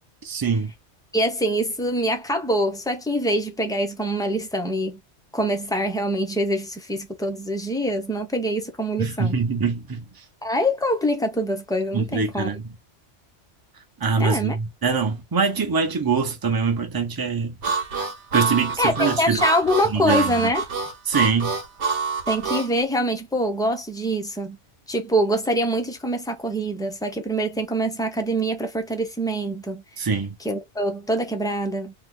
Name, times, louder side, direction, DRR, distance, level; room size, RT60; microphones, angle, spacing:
voice 1, 0.2-0.7 9.0-10.1 11.9-12.6 14.0-17.6 18.3-19.4 19.9-20.3 21.1-21.6 30.0-30.3, right 5 dB, 25° right, 0.6 m, -23 dB
voice 2, 1.1-5.0 5.3-9.4 10.4-12.5 14.2-14.6 18.8-20.6 22.3-24.6 24.9-29.8 30.4-31.9, equal, 5° left, 0.3 m, -24 dB
Harmonica, 17.6-22.7, right 5 dB, 75° right, 1.2 m, -26 dB
2.8 x 2.3 x 3.5 m
omnidirectional pair, 1.2 m